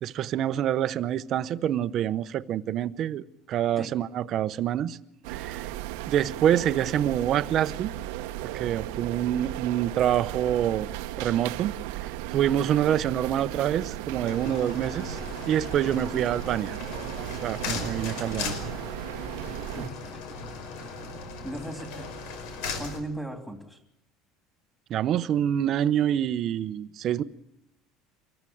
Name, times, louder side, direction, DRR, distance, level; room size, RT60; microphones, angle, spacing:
voice 1, 0.0-5.0 5.3-5.6 6.1-7.9 8.5-10.9 11.2-11.7 12.3-15.2 15.5-16.8 17.4-18.6 24.9-27.2, right 10 dB, 40° right, 0.8 m, -26 dB
sound 1, 5.2-19.9, right 14 dB, 85° right, 1.0 m, -36 dB
sound 2, 14.3-23.0, left 4 dB, 75° left, 5.5 m, -37 dB
voice 2, 19.4-20.4 21.4-23.8, right 1 dB, ahead, 3.0 m, -39 dB
24.5 x 14.5 x 9.3 m
cardioid pair, 150°, 0 cm